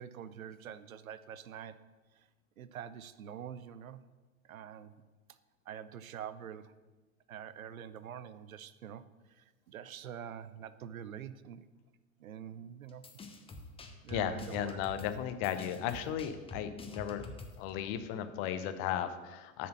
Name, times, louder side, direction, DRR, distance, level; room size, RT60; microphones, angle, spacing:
voice 1, 0.0-1.9 2.2-2.3 2.6-4.0 4.4-4.9 5.3-5.4 5.7-6.7 7.3-11.7 12.2-13.0 14.0-14.8, right 9 dB, 80° right, 15 dB, 0.5 m, -46 dB
sound 1, 12.9-17.7, left 3 dB, 15° left, 0.8 m, -47 dB
voice 2, 14.1-17.3 17.6-19.7, left 10 dB, 45° left, 10 dB, 0.7 m, -35 dB
7.4 x 4.3 x 6.2 m, 1.2 s
figure-of-eight pair, 80°, 41 cm